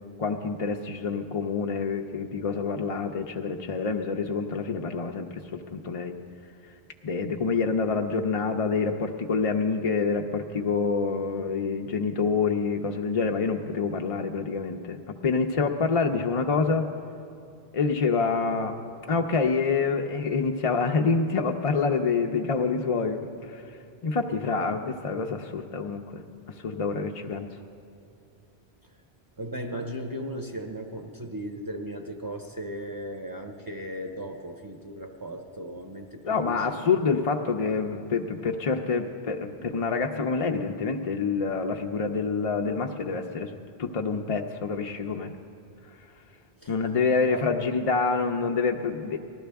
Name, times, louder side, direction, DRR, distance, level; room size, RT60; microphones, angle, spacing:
voice 1, 0.2-6.1 7.0-16.9 17.7-18.8 19.1-23.6 24.0-26.2 26.6-27.5 36.2-43.5 43.8-45.3 46.7-49.2, left 4 dB, 45° left, 3 dB, 0.5 m, -27 dB
voice 2, 29.4-36.7 46.6-46.7 47.3-47.5, right 1 dB, 25° right, 3 dB, 0.6 m, -36 dB
19.5 x 12.5 x 3.4 m, 2.5 s
omnidirectional pair, 1.1 m